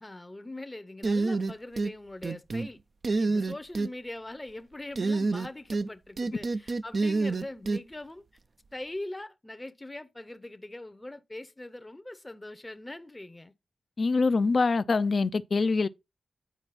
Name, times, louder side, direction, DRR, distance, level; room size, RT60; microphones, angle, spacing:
voice 1, 0.0-2.8 3.2-8.2 8.7-13.5, left 1 dB, 20° left, 0.7 m, -42 dB
sound 1, 1.0-1.9 2.2-2.7 3.0-3.9 5.0-5.9 6.2-7.8, right 3 dB, 55° right, 0.5 m, -27 dB
voice 2, 14.0-15.9, left 4 dB, 55° left, 0.5 m, -24 dB
9.2 x 4.5 x 4.1 m
cardioid pair, 50°, 0 cm